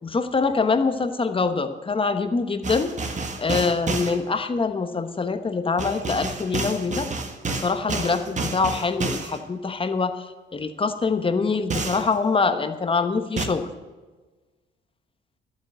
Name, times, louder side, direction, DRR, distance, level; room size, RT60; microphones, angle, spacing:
voice 1, 0.0-2.9 3.4-7.1 7.5-10.3 10.5-13.7, left 4 dB, 25° left, 8 dB, 1.1 m, -24 dB
sound 1, 2.6-4.2 5.8-9.4 11.7-12.1 13.4-13.5, right 3 dB, 35° right, 1.5 m, -29 dB
12.0 x 8.5 x 7.9 m, 1.3 s
cardioid pair, 90°, 20 cm